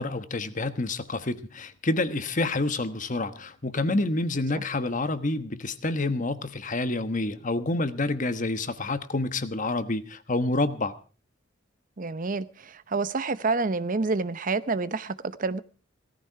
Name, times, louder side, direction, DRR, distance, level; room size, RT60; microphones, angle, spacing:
voice 1, 0.0-10.9, left 2 dB, 40° left, 1.2 m, -28 dB
voice 2, 12.0-15.6, right 3 dB, 40° right, 0.7 m, -28 dB
18.0 x 14.0 x 4.6 m
head